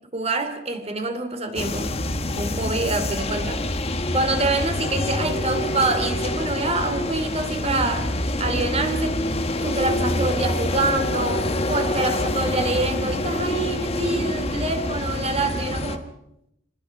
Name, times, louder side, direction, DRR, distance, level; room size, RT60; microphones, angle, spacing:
voice 1, 0.1-1.9 2.4-3.6 4.1-8.1 8.4-9.1 9.6-16.0, right 2 dB, 30° right, 8 dB, 2.9 m, -26 dB
sound 1, 1.6-16.0, left 1 dB, 30° left, 1.4 m, -26 dB
27.5 x 20.0 x 6.0 m, 0.80 s
head